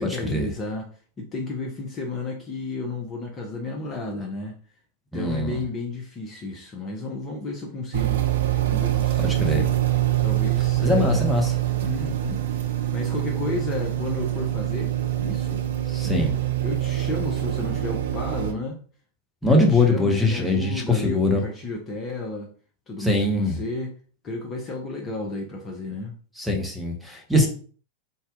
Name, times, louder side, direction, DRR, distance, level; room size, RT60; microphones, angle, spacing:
voice 1, 0.0-4.6 5.1-8.2 8.7-9.8 10.2-11.3 11.8-15.6 16.0-16.3 16.6-18.8 19.4-22.5 22.9-23.9 24.2-26.2, left 2 dB, 25° left, 1 dB, 0.7 m, -32 dB
voice 2, 5.1-5.6 9.2-9.6 10.8-11.5 15.9-16.3 19.4-21.4 23.0-23.5 26.4-27.5, left 2 dB, ahead, 1 dB, 1.0 m, -22 dB
sound 1, 7.9-18.5, right 13 dB, 60° right, 0.5 m, -25 dB
4.1 x 2.2 x 3.7 m, 0.42 s
figure-of-eight pair, 90°, 0 cm